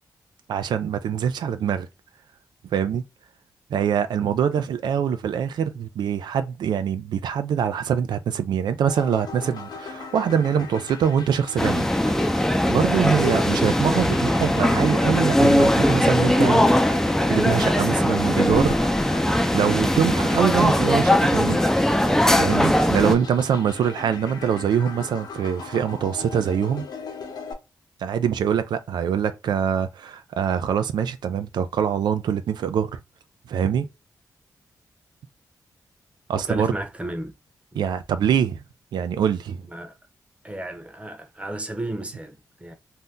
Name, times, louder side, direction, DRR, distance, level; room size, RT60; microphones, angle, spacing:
voice 1, 0.5-1.9 2.7-3.0 3.7-11.9 12.7-18.8 19.5-21.6 22.4-26.9 28.0-32.9 33.5-33.9 36.3-36.7 37.8-38.6 38.9-39.6, right 8 dB, 85° right, 0.4 m, -24 dB
sound 1, 8.9-27.5, left 5 dB, 70° left, 0.9 m, -38 dB
sound 2, 11.6-23.1, left 1 dB, 5° left, 0.4 m, -20 dB
voice 2, 36.3-37.3 37.7-37.8 39.7-39.9 40.4-42.7, right 1 dB, 15° right, 0.8 m, -33 dB
2.7 x 2.1 x 3.5 m
cardioid pair, 75°, 7 cm